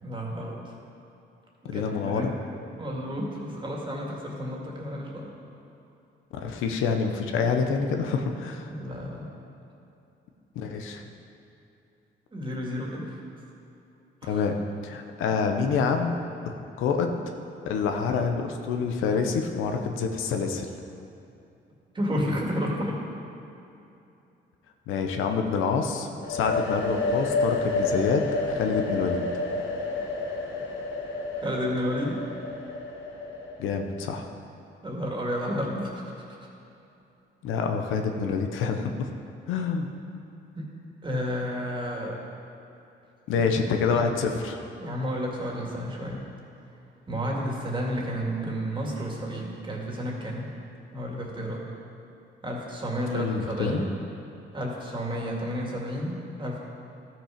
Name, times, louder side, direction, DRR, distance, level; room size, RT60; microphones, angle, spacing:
voice 1, 0.0-0.6 1.6-2.4 2.8-5.3 8.5-9.2 12.3-13.2 14.2-14.4 21.9-23.0 31.4-32.2 34.8-36.1 40.6-40.7 41.0-42.3 43.3-43.6 43.9-44.0 44.7-46.2 47.1-50.5 50.9-51.6 52.4-53.9 54.5-56.6, equal, 25° right, -2 dB, 2.1 m, -31 dB
voice 2, 1.6-2.3 6.3-8.7 10.6-11.0 14.3-14.6 14.8-16.2 16.5-17.2 17.7-20.7 24.9-29.2 33.6-34.3 37.4-39.1 39.5-39.9 43.3-44.6 53.1-53.8, left 5 dB, 90° left, 4 dB, 0.8 m, -27 dB
sound 1, 26.2-33.9, left 3 dB, 75° left, 1.4 m, -30 dB
13.0 x 6.0 x 5.1 m, 2.8 s
cardioid pair, 90°, 20 cm